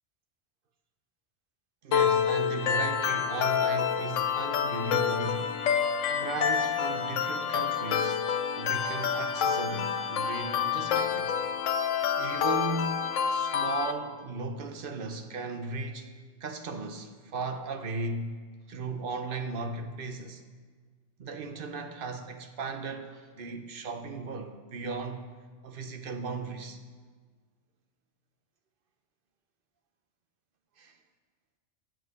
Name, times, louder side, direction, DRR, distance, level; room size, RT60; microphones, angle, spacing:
voice 1, 1.8-8.2 8.6-11.3 12.2-16.1 16.4-18.4 18.7-20.4 21.2-25.3 25.6-26.8 30.8-30.9, right 3 dB, 50° right, 7 dB, 0.8 m, -36 dB
sound 1, 1.9-13.9, left 7 dB, 80° left, 1.0 m, -28 dB
7.8 x 7.5 x 6.5 m, 1.5 s
omnidirectional pair, 1.3 m